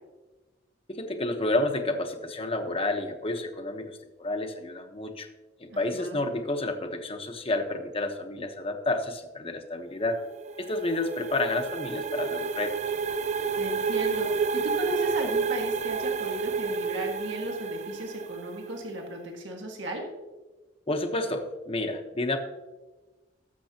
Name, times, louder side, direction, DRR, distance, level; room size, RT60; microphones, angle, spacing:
voice 1, 0.9-5.3 5.8-10.2 10.6-12.8 20.9-22.4, left 2 dB, 30° left, 5 dB, 1.1 m, -30 dB
voice 2, 5.7-6.2 13.6-14.3 14.5-20.1, equal, 70° right, 1 dB, 1.7 m, -35 dB
sound 1, 10.1-18.8, right 5 dB, 35° right, 0.4 m, -30 dB
19.5 x 6.9 x 2.9 m, 1.2 s
head